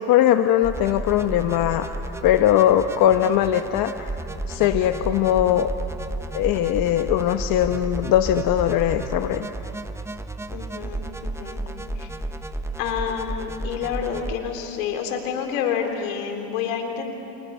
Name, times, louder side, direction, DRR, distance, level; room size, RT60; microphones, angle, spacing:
voice 1, 0.1-1.9 2.2-4.1 4.5-5.7 6.3-9.5, left 11 dB, 55° left, 7 dB, 1.1 m, -20 dB
sound 1, 0.6-14.3, right 2 dB, 5° right, 1.1 m, -32 dB
voice 2, 10.5-11.6 11.9-12.1 12.8-17.1, left 7 dB, 85° left, 4 dB, 3.9 m, -28 dB
29.5 x 29.0 x 5.7 m, 2.8 s
supercardioid pair, 105°, 40 cm